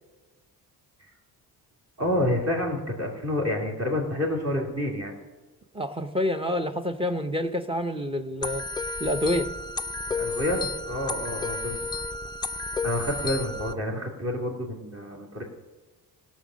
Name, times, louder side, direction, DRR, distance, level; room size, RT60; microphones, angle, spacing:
voice 1, 2.0-5.1 10.1-11.8 12.8-15.4, left 1 dB, 40° right, -1 dB, 2.9 m, -28 dB
voice 2, 5.7-8.6 9.0-9.5, left 1 dB, 15° right, 10 dB, 0.7 m, -27 dB
sound 1, 8.4-13.7, left 3 dB, 10° left, 0.3 m, -32 dB
16.5 x 6.3 x 6.4 m, 1.2 s
cardioid pair, 100°, 40 cm